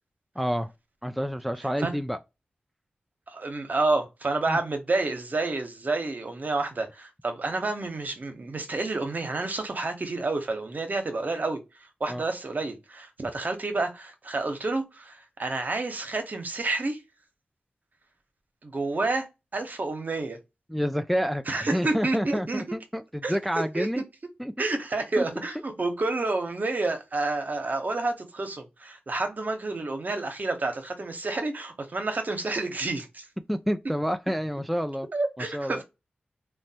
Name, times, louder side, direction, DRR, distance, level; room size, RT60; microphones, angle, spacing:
voice 1, 0.4-0.7 1.0-2.2 4.5-4.6 12.1-12.2 20.7-24.0 24.4-24.7 25.2-25.3 33.5-35.1 35.4-35.8, equal, ahead, 0.3 m, -29 dB
voice 2, 3.3-11.6 12.0-17.0 18.6-19.3 19.5-20.4 21.5-22.6 23.2-23.3 23.7-23.9 24.6-33.2 35.1-35.8, right 3 dB, 50° right, 0.7 m, -29 dB
3.1 x 2.2 x 2.7 m
cardioid pair, 45°, 4 cm